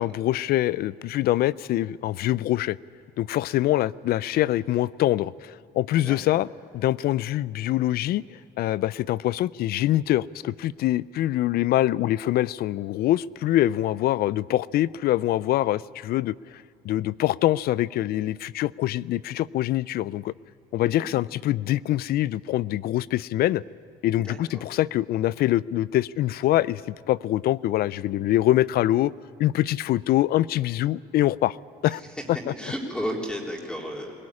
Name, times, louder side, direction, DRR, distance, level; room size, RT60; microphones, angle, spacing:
voice 1, 0.0-2.8 3.2-6.5 6.7-20.3 20.7-23.6 24.0-26.8 27.1-29.1 29.4-31.6 31.8-32.0, left 14 dB, 65° left, 21 dB, 0.4 m, -24 dB
voice 2, 6.0-6.4 20.8-21.1 24.2-24.7 31.8-34.1, equal, 5° left, -1 dB, 3.6 m, -34 dB
22.0 x 17.0 x 9.8 m, 2.4 s
cardioid pair, 110°, 17 cm